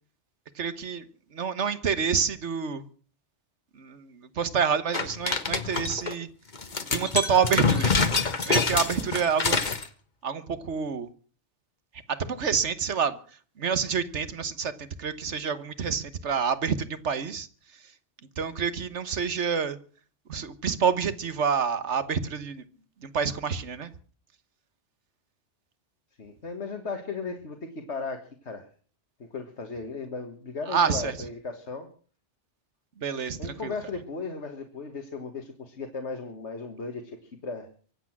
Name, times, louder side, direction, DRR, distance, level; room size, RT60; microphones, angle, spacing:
voice 1, 0.5-1.1 1.3-2.9 3.7-6.3 6.9-9.6 10.2-11.1 12.1-13.2 13.6-17.5 18.4-19.8 20.3-22.6 23.0-23.9 30.7-31.1 33.0-33.7, right 6 dB, 75° right, 13 dB, 1.5 m, -28 dB
sound 1, 4.9-6.1 6.6-9.8, left 4 dB, 40° left, 1.4 m, -26 dB
voice 2, 8.6-8.9 26.2-28.7 29.2-31.9 33.4-37.7, left 4 dB, 70° left, 4 dB, 2.0 m, -36 dB
24.5 x 8.5 x 6.0 m, 0.42 s
omnidirectional pair, 1.2 m